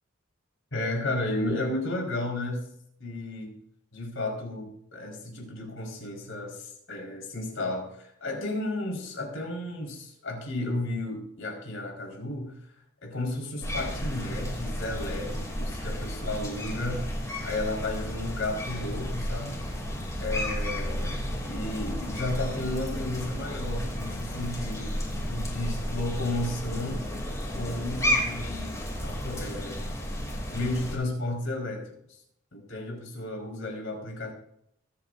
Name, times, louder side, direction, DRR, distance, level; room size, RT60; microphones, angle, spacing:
voice 1, 0.7-2.7 3.0-3.5 3.9-12.6 13.0-17.1 17.4-19.6 20.2-21.2 21.5-27.0 27.5-29.8 30.5-31.9 32.5-34.3, left 2 dB, 75° left, 0 dB, 4.5 m, -33 dB
sound 1, 13.6-31.0, equal, 15° left, 2.8 m, -32 dB
23.0 x 8.7 x 2.6 m, 0.73 s
head